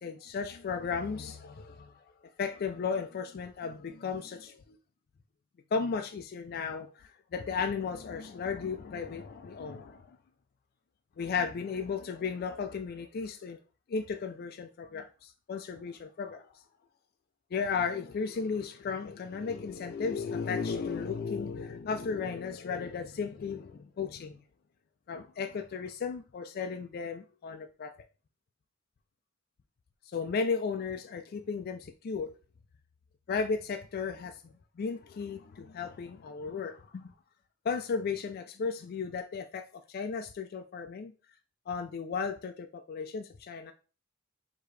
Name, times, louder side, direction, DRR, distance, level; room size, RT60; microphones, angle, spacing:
voice 1, 0.0-1.9 2.4-4.8 5.7-6.9 7.3-10.2 11.2-13.6 13.9-16.4 17.5-24.4 25.1-27.9 30.1-32.3 33.3-37.1 37.6-41.1 41.7-43.7, left 5 dB, 50° left, 0.3 m, -35 dB
4.7 x 2.8 x 3.1 m
head